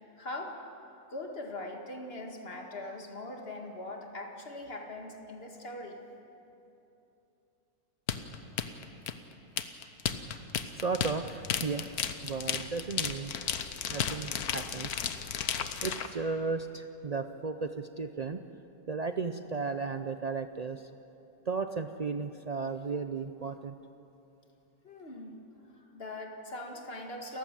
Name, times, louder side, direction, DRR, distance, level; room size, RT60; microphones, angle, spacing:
voice 1, 0.2-0.6 1.1-6.0 24.8-25.4 25.7-27.4, left 2 dB, 40° left, 2 dB, 2.3 m, -41 dB
sound 1, 8.1-16.1, left 8 dB, 80° left, 1.5 m, -33 dB
voice 2, 10.3-13.3 13.9-15.1 15.8-18.4 18.9-20.9 21.5-23.8, right 4 dB, 75° right, 8 dB, 0.3 m, -35 dB
29.0 x 14.5 x 7.5 m, 2.9 s
omnidirectional pair, 1.6 m